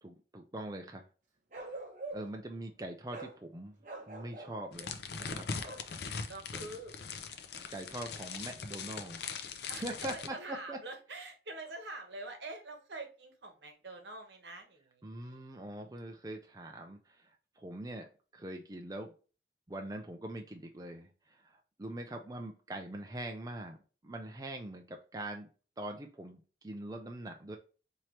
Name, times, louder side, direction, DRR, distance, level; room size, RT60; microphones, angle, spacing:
voice 1, 0.0-1.1 1.6-1.8 2.1-3.8 4.1-5.5 7.7-10.8 15.0-18.1 18.3-19.1 19.7-25.5 25.8-27.6, right 1 dB, 20° right, 3 dB, 0.4 m, -43 dB
Bark, 1.5-2.4 3.1-3.4 3.8-4.6 5.6-5.9, right 2 dB, 45° right, 1.0 m, -44 dB
sound 1, 4.7-10.3, left 5 dB, 70° left, 0.5 m, -41 dB
voice 2, 6.3-7.0 9.7-15.4, right 2 dB, 75° right, 4 dB, 1.1 m, -45 dB
4.5 x 2.9 x 3.1 m, 0.35 s
head